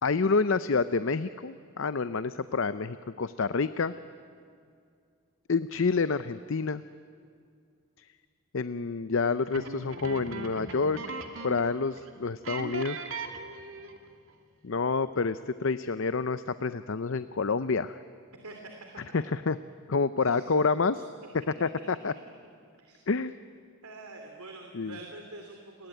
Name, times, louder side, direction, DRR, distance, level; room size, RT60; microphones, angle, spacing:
voice 1, 0.0-3.9 5.5-6.8 8.0-8.1 8.5-11.2 11.4-13.0 14.6-18.0 19.1-19.6 19.9-21.0 21.6-22.1 23.1-23.3 24.7-25.0, left 4 dB, 60° left, 13 dB, 0.6 m, -28 dB
sound 1, 9.5-11.7 12.0-12.1 12.4-14.1, right 3 dB, 65° right, 2.4 m, -39 dB
voice 2, 20.2-20.6 20.9-21.0 21.4-21.5 22.8-23.0 23.8-25.9, right 2 dB, 85° right, 3 dB, 2.9 m, -46 dB
30.0 x 21.5 x 9.1 m, 2.3 s
head